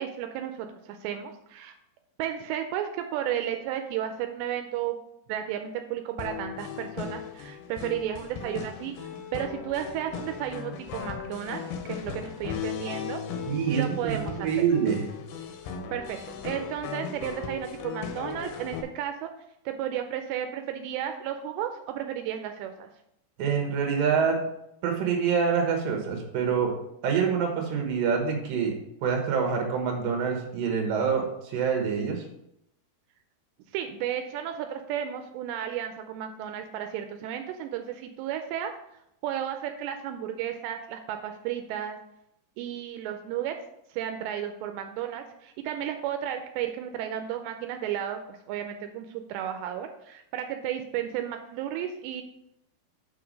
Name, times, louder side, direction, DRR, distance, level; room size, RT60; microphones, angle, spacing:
voice 1, 0.0-1.7 2.2-5.0 5.3-13.2 13.7-14.7 15.9-16.2 16.4-19.3 19.7-22.9 33.7-38.7 39.2-42.0 42.6-43.6 43.9-52.2, right 10 dB, 85° right, 6 dB, 2.7 m, -33 dB
sound 1, 6.2-18.8, left 7 dB, 75° left, 2.5 m, -37 dB
voice 2, 13.5-15.1 23.4-24.4 24.8-26.7 27.0-32.2, right 6 dB, 65° right, 3 dB, 2.7 m, -26 dB
6.1 x 5.8 x 5.1 m, 0.79 s
omnidirectional pair, 4.9 m